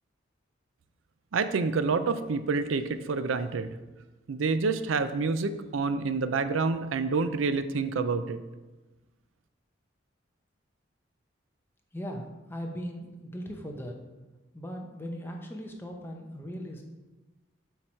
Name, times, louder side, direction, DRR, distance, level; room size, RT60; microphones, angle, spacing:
voice 1, 1.3-3.8 4.3-8.4, right 4 dB, 85° right, 11 dB, 0.5 m, -28 dB
voice 2, 11.9-14.0 14.5-16.8, equal, 10° left, 1 dB, 0.8 m, -38 dB
8.0 x 4.8 x 4.4 m, 1.1 s
head